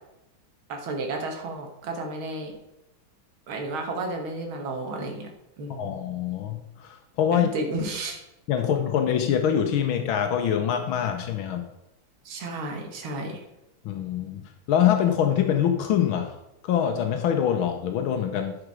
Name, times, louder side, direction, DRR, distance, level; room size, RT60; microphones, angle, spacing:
voice 1, 0.7-2.5 3.5-5.3 5.6-6.0 7.3-8.2 12.3-13.4, right 2 dB, 80° right, 2 dB, 2.2 m, -32 dB
voice 2, 5.7-7.5 8.5-11.7 13.9-16.4 16.6-18.6, left 9 dB, 85° left, 5 dB, 1.7 m, -24 dB
11.5 x 5.0 x 4.8 m, 0.87 s
omnidirectional pair, 2.2 m